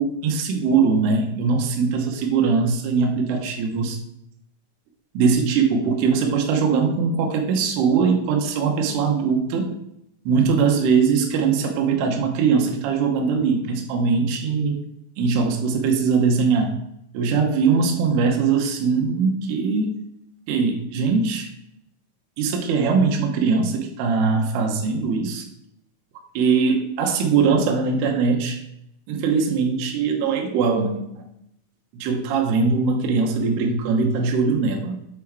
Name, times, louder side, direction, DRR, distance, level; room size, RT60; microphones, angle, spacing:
voice 1, 0.0-4.0 5.1-9.7 10.3-14.8 15.2-16.8 17.1-19.9 20.5-21.5 22.4-25.5 26.3-28.6 29.1-31.2 31.9-35.0, right 5 dB, 80° right, 2 dB, 2.4 m, -21 dB
7.6 x 3.6 x 4.5 m, 0.78 s
omnidirectional pair, 6.0 m